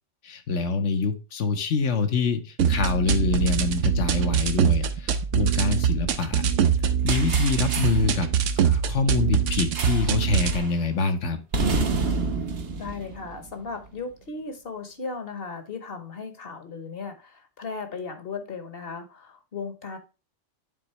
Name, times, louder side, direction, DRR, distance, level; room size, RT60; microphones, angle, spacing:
voice 1, 0.2-6.4 7.0-8.3 8.6-11.4, left 4 dB, 80° left, 7 dB, 1.3 m, -25 dB
sound 1, 2.6-10.6, right 8 dB, 85° right, 1.0 m, -23 dB
sound 2, 7.1-8.1 9.8-10.2 10.4-10.7 11.5-13.9, right 3 dB, 60° right, 1.2 m, -29 dB
voice 2, 12.7-20.0, left 4 dB, 55° left, 9 dB, 1.2 m, -36 dB
9.0 x 4.0 x 3.1 m, 0.31 s
omnidirectional pair, 1.2 m